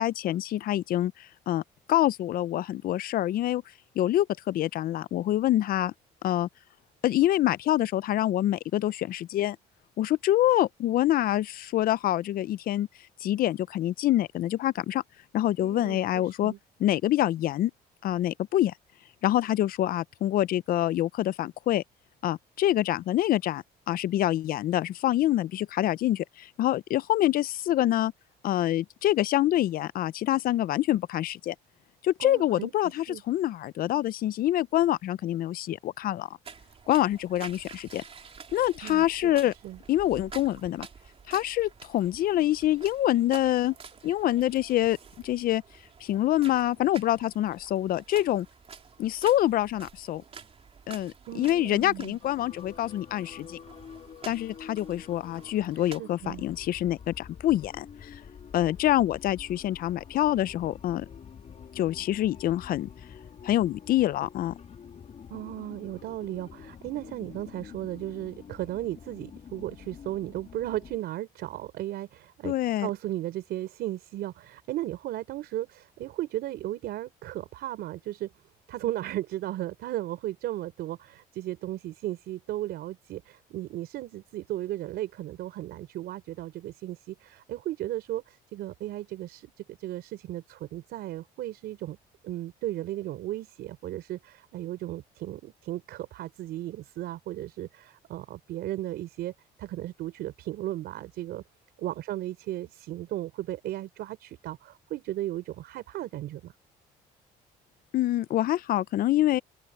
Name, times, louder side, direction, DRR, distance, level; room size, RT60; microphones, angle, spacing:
voice 1, 0.0-1.6 1.9-3.6 4.0-5.9 6.2-6.5 7.0-9.6 10.0-12.9 13.2-15.0 15.3-16.5 16.8-17.7 18.0-18.7 19.2-21.8 22.2-28.1 28.4-31.5 32.0-36.4 36.9-38.0 38.5-39.5 39.9-40.9 41.3-43.7 44.0-45.0 45.2-45.6 46.0-48.5 49.0-50.2 50.9-53.6 54.2-58.2 58.5-61.1 61.8-62.9 63.4-64.5 72.4-72.9 107.9-109.4, left 13 dB, 60° left, 0.5 m, -26 dB
voice 2, 15.6-16.6 32.2-32.7 33.1-33.2 38.8-39.3 39.6-39.8 51.3-52.2 55.8-56.4 65.3-72.5 72.8-78.3 78.7-92.0 92.2-99.3 99.6-101.4 101.8-106.5, right 14 dB, 75° right, 4.2 m, -35 dB
sound 1, 36.4-56.0, right 6 dB, 35° right, 3.5 m, -49 dB
sound 2, 52.2-71.0, left 7 dB, 45° left, 3.0 m, -47 dB
open air
cardioid pair, 110°, 17 cm